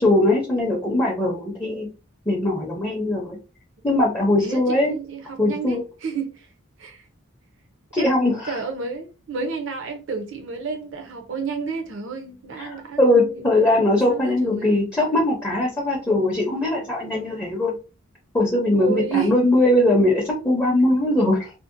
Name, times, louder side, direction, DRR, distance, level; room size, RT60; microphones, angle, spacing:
voice 1, 0.0-1.9 2.3-3.4 3.8-4.9 5.4-5.8 7.9-8.6 12.6-17.8 18.3-21.5, left 1 dB, 10° left, 0.5 m, -20 dB
voice 2, 4.4-6.5 6.8-7.0 8.0-8.1 8.5-13.6 14.1-14.8 18.7-19.4, right 5 dB, 60° right, 0.6 m, -31 dB
2.6 x 2.0 x 2.5 m
head